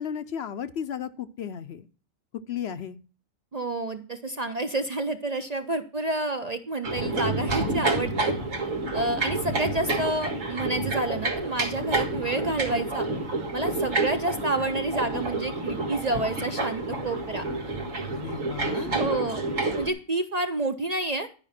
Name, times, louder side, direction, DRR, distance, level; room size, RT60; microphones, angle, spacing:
voice 1, 0.0-1.9 2.5-3.0 18.1-19.0, left 8 dB, 60° left, 12 dB, 0.8 m, -34 dB
voice 2, 3.5-8.3 8.9-13.1 13.5-17.5 18.7-19.4 19.8-21.3, right 2 dB, 40° right, 7 dB, 0.6 m, -29 dB
Broken Fan Spinning, 6.8-19.9, right 2 dB, 85° right, 2.1 m, -29 dB
11.5 x 5.3 x 5.7 m, 0.38 s
omnidirectional pair, 1.3 m